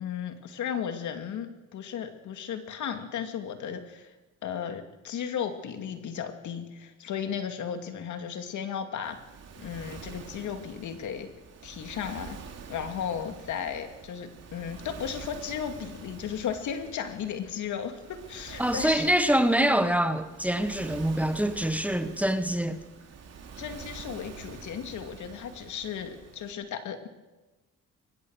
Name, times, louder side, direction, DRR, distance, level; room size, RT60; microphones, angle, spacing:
voice 1, 0.0-4.1 4.4-9.2 9.6-11.3 11.6-12.4 12.7-19.1 23.6-27.1, left 8 dB, 75° left, 2.5 m, -35 dB
Waves surf, 9.0-26.5, right 6 dB, 55° right, 3.5 m, -46 dB
voice 2, 18.6-22.8, right 1 dB, 5° right, 1.6 m, -25 dB
23.0 x 21.0 x 6.5 m
cardioid pair, 90°, 30 cm